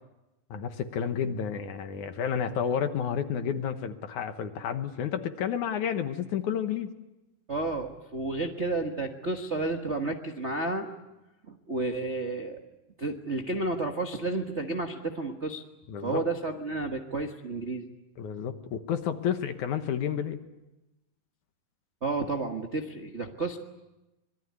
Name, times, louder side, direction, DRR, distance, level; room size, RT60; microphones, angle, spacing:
voice 1, 0.5-6.9 15.9-16.2 18.2-20.4, left 8 dB, 65° left, 8 dB, 2.4 m, -31 dB
voice 2, 7.5-10.9 11.5-12.6 13.0-15.6 16.0-17.9 22.0-23.6, right 2 dB, 75° right, 2 dB, 0.6 m, -31 dB
26.0 x 22.0 x 9.6 m, 1.0 s
omnidirectional pair, 4.0 m